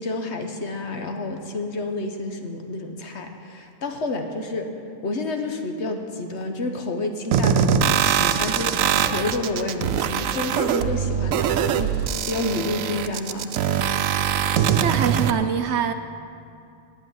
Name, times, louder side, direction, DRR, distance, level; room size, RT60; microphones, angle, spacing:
voice 1, 0.0-4.7 5.0-11.9 12.3-14.0, left 2 dB, 60° left, 5 dB, 1.3 m, -29 dB
sound 1, 7.3-15.3, right 8 dB, 90° right, 1.0 m, -22 dB
voice 2, 14.8-15.9, right 8 dB, 65° right, 9 dB, 0.8 m, -23 dB
8.9 x 8.2 x 9.1 m, 2.5 s
omnidirectional pair, 1.3 m